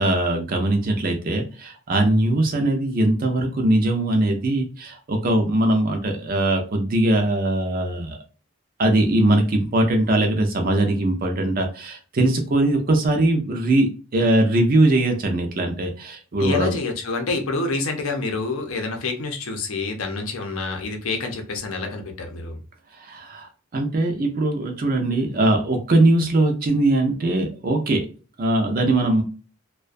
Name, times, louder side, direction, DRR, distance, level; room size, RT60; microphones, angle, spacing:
voice 1, 0.0-8.2 8.8-16.8 23.0-28.1 28.4-29.2, right 1 dB, 40° right, 3 dB, 0.4 m, -21 dB
voice 2, 16.4-22.6, left 3 dB, 85° left, 3 dB, 0.6 m, -27 dB
2.3 x 2.2 x 2.4 m, 0.36 s
head